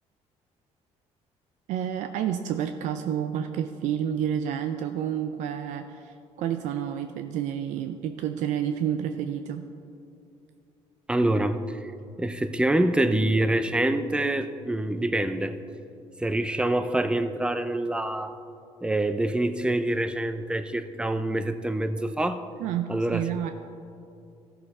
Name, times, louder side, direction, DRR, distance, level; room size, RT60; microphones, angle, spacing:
voice 1, 1.7-9.6 22.6-23.5, right 9 dB, 80° right, 8 dB, 0.4 m, -29 dB
voice 2, 11.1-11.9 12.2-15.6 16.2-18.3 18.8-22.4 22.9-23.2, right 1 dB, 10° right, 10 dB, 0.5 m, -26 dB
13.5 x 6.8 x 4.2 m, 2.6 s
cardioid pair, 95°, 12 cm